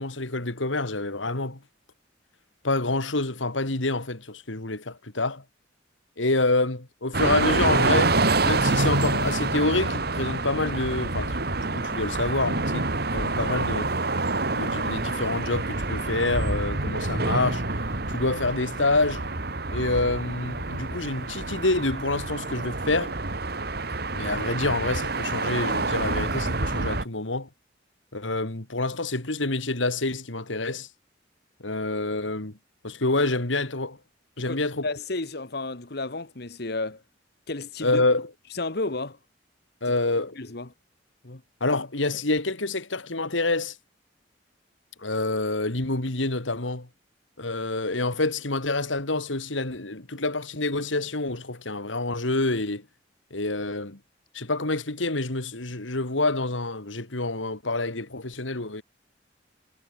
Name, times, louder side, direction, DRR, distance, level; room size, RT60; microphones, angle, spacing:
voice 1, 0.0-1.6 2.6-5.4 6.2-8.1 8.4-13.9 14.5-17.6 18.1-19.3 19.7-23.1 24.1-27.5 28.1-30.9 31.6-32.6 32.8-34.0 34.4-34.8 37.8-38.3 39.8-40.4 41.6-43.8 45.0-46.9 47.4-52.9 53.3-54.0 54.3-58.8, left 2 dB, 90° left, 2.8 m, -27 dB
sound 1, 7.1-27.0, right 3 dB, 55° right, 2.4 m, -27 dB
voice 2, 34.4-37.0 37.5-38.0 38.5-39.2 40.3-40.7 41.2-41.4, left 2 dB, 55° left, 1.5 m, -32 dB
head